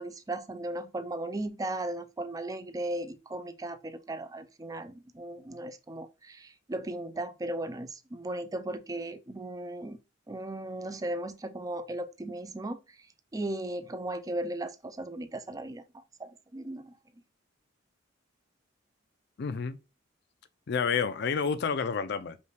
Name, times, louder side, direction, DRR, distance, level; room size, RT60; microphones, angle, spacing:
voice 1, 0.0-10.0 10.3-12.8 13.3-16.9, right 1 dB, 20° right, 0.4 m, -36 dB
voice 2, 19.4-19.8 20.7-22.4, left 6 dB, 55° left, 0.4 m, -29 dB
5.3 x 2.4 x 3.3 m
head